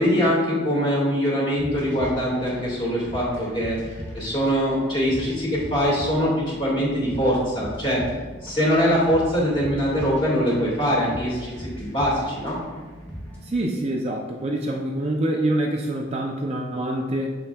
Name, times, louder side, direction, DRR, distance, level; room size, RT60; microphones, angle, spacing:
voice 1, 0.0-3.8 4.1-8.0 8.4-12.6, equal, 25° left, -5 dB, 1.9 m, -23 dB
sound 1, 1.6-13.6, equal, 5° left, 1.5 m, -39 dB
voice 2, 13.4-17.3, right 1 dB, 30° right, 0 dB, 0.5 m, -26 dB
7.3 x 6.8 x 2.3 m, 1.3 s
head